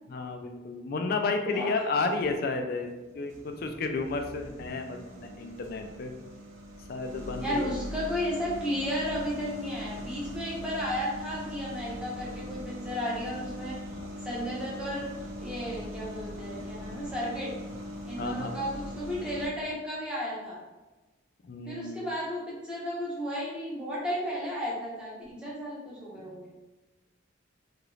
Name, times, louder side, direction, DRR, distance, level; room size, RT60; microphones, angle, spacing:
voice 1, 0.1-2.9 3.1-6.1 6.9-7.7 14.0-14.1 18.2-18.6 21.4-22.0 26.2-26.3, left 3 dB, 50° left, 5 dB, 0.3 m, -32 dB
voice 2, 1.5-1.8 7.4-13.8 14.2-15.1 15.4-17.5 18.0-20.6 21.7-26.5, equal, 5° right, -7 dB, 0.8 m, -34 dB
dishwasher start stop short, 1.9-2.3 2.9-19.5, equal, 75° right, 0.6 m, -41 dB
2.8 x 2.5 x 3.1 m, 1.1 s
head